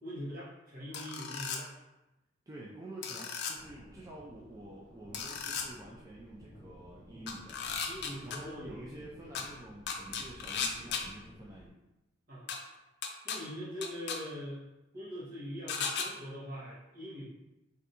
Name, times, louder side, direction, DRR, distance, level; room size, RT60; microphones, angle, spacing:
voice 1, 0.0-1.7 7.9-9.0 12.3-12.6 13.2-14.6 14.9-17.2, equal, 50° right, -8 dB, 1.2 m, -42 dB
sound 1, 0.9-1.6 3.0-3.5 5.1-5.6 7.3-8.4 9.3-9.4 9.9-11.0 12.5-12.6 13.0-13.4 13.8-14.2 15.7-16.1, left 6 dB, 60° left, 0.4 m, -35 dB
voice 2, 2.5-7.6 8.2-11.8, right 1 dB, 20° right, -5 dB, 0.3 m, -48 dB
sound 2, 3.5-11.7, equal, 10° left, 1.3 m, -55 dB
3.3 x 2.5 x 2.8 m, 0.96 s
head